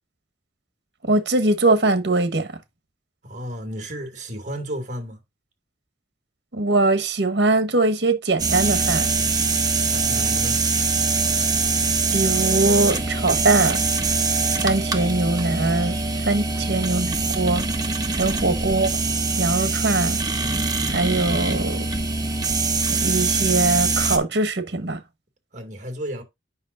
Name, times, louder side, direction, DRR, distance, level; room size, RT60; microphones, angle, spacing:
voice 1, 1.0-2.6 6.5-9.1 12.1-13.8 14.6-16.0 16.2-17.6 18.1-19.0 19.4-20.2 20.9-21.9 22.9-25.0, right 2 dB, 70° right, 1.3 m, -21 dB
voice 2, 3.2-5.2 9.9-10.6 16.6-16.9 18.3-18.6 25.5-26.2, equal, 45° right, 2.4 m, -33 dB
sound 1, 8.4-24.2, right 4 dB, 20° right, 1.2 m, -23 dB
9.6 x 5.6 x 2.6 m
head